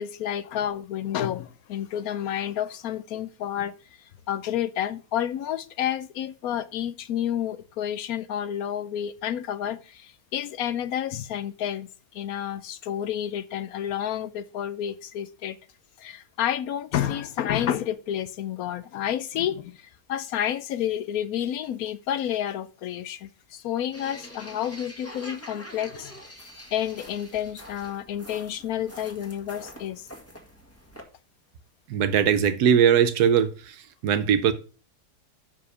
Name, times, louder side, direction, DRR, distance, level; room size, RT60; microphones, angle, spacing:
voice 1, 0.0-15.6 16.0-26.1 26.7-30.1, left 10 dB, 70° left, 1.0 m, -30 dB
sound 1, 23.9-31.0, equal, 10° left, 1.5 m, -45 dB
voice 2, 31.9-33.7 34.0-34.5, right 8 dB, 75° right, 1.3 m, -20 dB
6.0 x 4.9 x 6.7 m
omnidirectional pair, 1.7 m